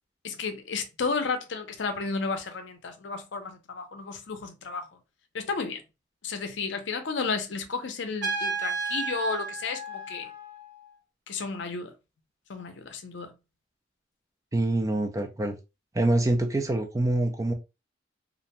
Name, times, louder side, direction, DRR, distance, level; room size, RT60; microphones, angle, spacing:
voice 1, 0.2-4.9 5.3-5.8 6.2-10.3 11.3-11.9 12.5-13.3, left 4 dB, 70° left, 0.5 m, -32 dB
Trumpet, 8.2-10.9, right 4 dB, 60° right, 1.1 m, -33 dB
voice 2, 14.5-15.6 15.9-17.5, right 1 dB, 15° right, 0.3 m, -25 dB
2.5 x 2.1 x 2.8 m
head